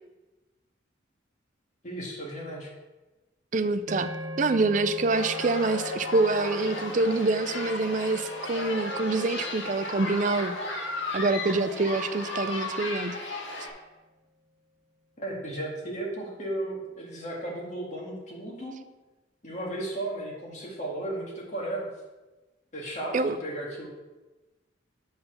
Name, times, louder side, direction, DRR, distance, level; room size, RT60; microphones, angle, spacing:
voice 1, 1.8-2.7 15.2-18.7 19.4-21.9 22.7-23.9, right 1 dB, 40° left, -3 dB, 2.0 m, -35 dB
voice 2, 3.5-4.1 4.4-10.6 11.1-13.1 23.1-23.4, right 3 dB, 40° right, 11 dB, 0.4 m, -26 dB
sound 1, 3.9-12.3, left 1 dB, 60° right, 1.1 m, -43 dB
sound 2, 5.1-13.7, left 2 dB, 75° left, 1.5 m, -35 dB
7.8 x 4.0 x 6.6 m, 1.1 s
head